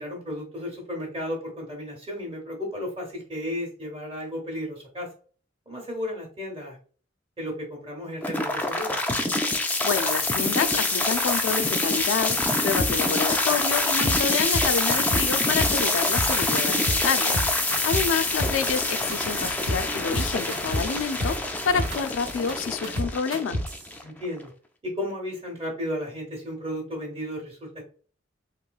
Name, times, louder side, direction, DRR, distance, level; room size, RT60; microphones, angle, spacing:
voice 1, 0.0-5.1 5.7-6.8 7.4-9.0 17.9-18.2 24.0-24.5 24.8-27.8, left 1 dB, 30° right, 0.8 m, -34 dB
sound 1, 8.2-24.2, left 2 dB, 10° left, 0.3 m, -25 dB
voice 2, 9.6-23.6, left 6 dB, 85° left, 0.4 m, -28 dB
sound 2, 12.8-13.2 13.5-13.6 13.8-14.2 14.5-15.3 15.6-16.4 16.6-17.0 17.3-18.8 19.1-19.2 19.4-19.8 20.1-20.9 21.2-22.0 22.3-23.8, equal, 65° right, 0.9 m, -28 dB
3.0 x 3.0 x 2.3 m
head